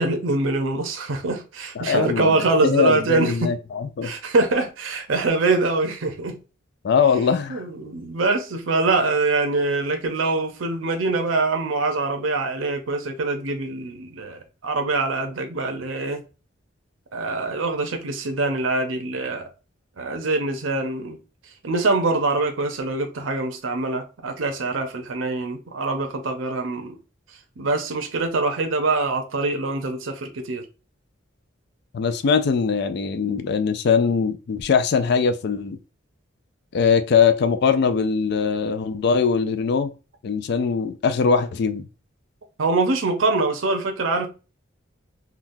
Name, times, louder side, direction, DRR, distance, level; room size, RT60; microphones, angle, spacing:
voice 1, 0.0-3.5 4.0-6.3 7.5-16.2 17.1-19.5 20.0-21.2 21.6-27.0 27.6-30.6 42.6-44.3, right 3 dB, 80° right, 0.7 m, -24 dB
voice 2, 1.8-4.1 6.8-7.6 31.9-35.8 36.7-39.9 40.2-41.9, left 6 dB, 55° left, 0.3 m, -21 dB
3.8 x 2.3 x 2.6 m
head